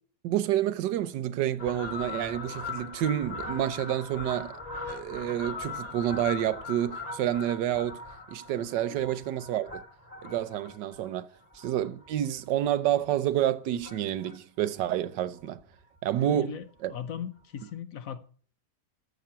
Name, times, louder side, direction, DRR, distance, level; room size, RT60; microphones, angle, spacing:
voice 1, 0.2-4.5 4.9-8.0 8.3-9.8 10.2-11.3 11.5-15.6 16.0-16.9, right 11 dB, 85° right, 1.4 m, -29 dB
Fowl, 1.6-12.4 12.8-13.1 13.8-14.4 14.7-14.8 15.0-15.1 15.4-15.5 15.8-16.0 17.0-17.1 17.6-17.7, left 3 dB, 20° left, 2.0 m, -40 dB
voice 2, 16.3-16.6 16.9-18.2, left 9 dB, 60° left, 1.0 m, -38 dB
13.5 x 6.1 x 5.6 m
omnidirectional pair, 1.9 m